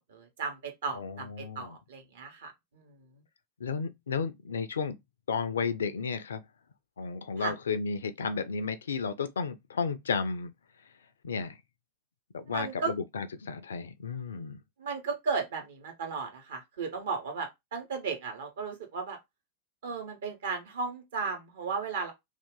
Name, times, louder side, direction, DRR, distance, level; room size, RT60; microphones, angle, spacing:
voice 1, 0.0-3.2 7.4-7.5 12.5-12.9 14.8-19.2 19.8-22.1, right 5 dB, 60° right, 1.1 m, -35 dB
voice 2, 1.0-1.8 3.6-5.0 5.3-6.4 7.0-10.5 11.2-11.6 12.3-14.6, left 5 dB, 65° left, 0.4 m, -33 dB
2.7 x 2.4 x 3.6 m
figure-of-eight pair, 90°, 0 cm